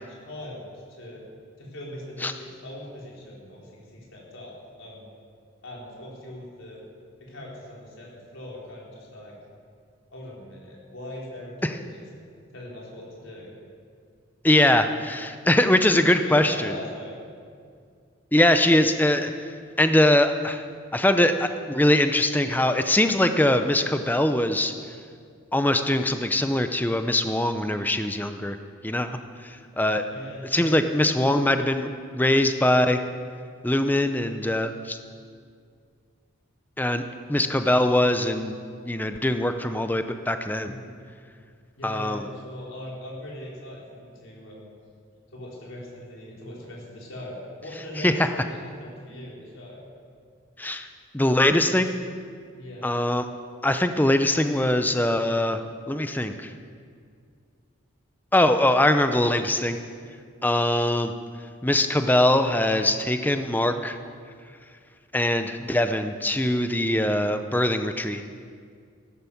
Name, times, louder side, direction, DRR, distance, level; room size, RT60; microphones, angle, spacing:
voice 1, 0.3-1.2 1.6-5.1 5.6-6.8 7.2-9.4 10.1-12.0 12.5-13.5 16.0-17.4 30.1-31.3 40.6-40.9 41.8-44.7 45.3-49.8 52.5-52.9, left 1 dB, 80° left, -4 dB, 4.4 m, -40 dB
voice 2, 14.4-16.7 18.3-19.3 19.8-20.6 20.9-24.7 25.5-28.6 28.8-29.1 29.4-30.0 30.5-31.9 32.1-33.0 33.6-35.0 36.8-37.0 37.3-38.6 38.9-40.7 41.8-42.2 48.0-48.1 50.6-50.9 51.1-51.9 52.8-53.2 53.6-56.5 58.3-59.8 60.4-61.1 61.6-64.0 65.1-68.2, left 1 dB, 10° left, 8 dB, 0.6 m, -22 dB
15.0 x 11.5 x 7.2 m, 2.2 s
head